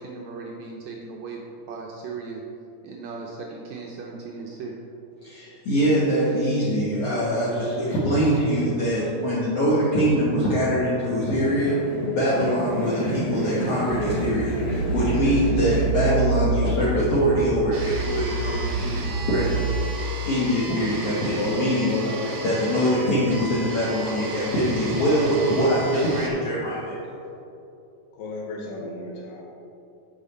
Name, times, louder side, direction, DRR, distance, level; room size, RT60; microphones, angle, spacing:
voice 1, 0.0-2.4 2.8-4.7, right 4 dB, 85° right, -1 dB, 1.6 m, -37 dB
voice 2, 5.2-11.8 12.1-19.6 20.3-21.9 22.4-27.0, equal, 55° left, -9 dB, 2.0 m, -23 dB
sound 1, 11.0-16.1, equal, 35° left, 1.7 m, -31 dB
sound 2, 13.9-19.8, right 4 dB, 10° left, 0.6 m, -27 dB
sound 3, 17.7-26.3, right 3 dB, 60° right, 1.6 m, -36 dB
voice 3, 21.3-23.0 28.1-29.4, left 1 dB, 85° left, -3 dB, 2.6 m, -32 dB
8.9 x 5.7 x 4.2 m, 2.9 s
omnidirectional pair, 3.9 m